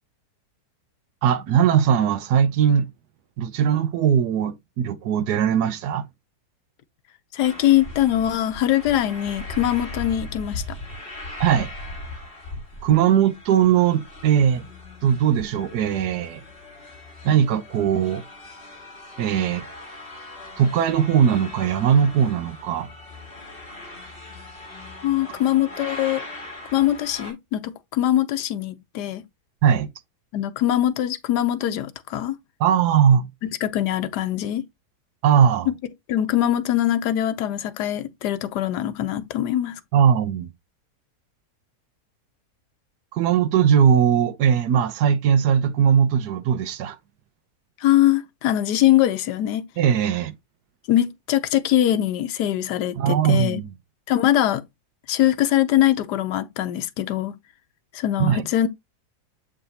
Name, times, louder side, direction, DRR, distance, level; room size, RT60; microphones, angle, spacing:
voice 1, 1.2-2.9 3.4-6.1 11.4-11.7 12.8-14.6 15.0-16.4 17.2-18.2 19.2-19.6 20.6-22.9 29.6-29.9 32.6-33.3 35.2-35.7 39.9-40.5 43.1-47.0 49.8-50.3 53.0-53.7 58.2-58.5, right 8 dB, 85° right, 1.3 m, -19 dB
voice 2, 7.3-10.6 25.0-26.2 26.7-29.3 30.3-32.4 33.4-34.6 35.7-35.8 36.1-39.8 47.8-49.7 50.9-53.6 54.1-54.6 55.1-57.4 57.9-58.7, left 12 dB, 90° left, 1.3 m, -22 dB
sound 1, 7.4-27.3, left 2 dB, 35° left, 2.6 m, -39 dB
7.8 x 4.9 x 2.8 m
omnidirectional pair, 1.7 m